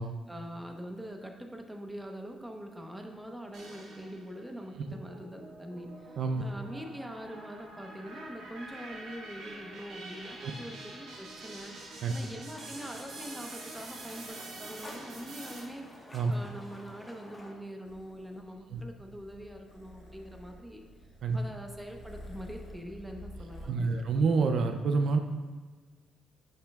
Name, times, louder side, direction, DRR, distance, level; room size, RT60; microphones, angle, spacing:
voice 1, 0.0-20.8 21.3-24.0, equal, 5° right, 3 dB, 0.9 m, -44 dB
sound 1, 3.5-4.4 4.9-15.6, right 2 dB, 90° right, 2.0 m, -46 dB
sound 2, 12.5-17.5, left 1 dB, 15° left, 1.3 m, -50 dB
Purr, 17.8-23.7, equal, 55° left, 2.1 m, -50 dB
voice 2, 23.7-25.2, right 4 dB, 65° right, 6 dB, 0.4 m, -27 dB
10.5 x 5.5 x 2.4 m, 1.4 s
cardioid pair, 90°, 0 cm